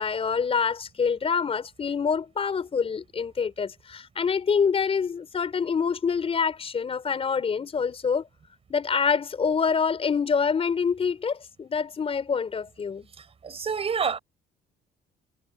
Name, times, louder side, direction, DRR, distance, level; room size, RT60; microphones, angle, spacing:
voice 1, 0.0-8.2 8.7-13.1, left 6 dB, 35° left, 5.1 m, -26 dB
voice 2, 13.2-14.2, right 6 dB, 35° right, 5.9 m, -29 dB
cardioid pair, 110°, 17 cm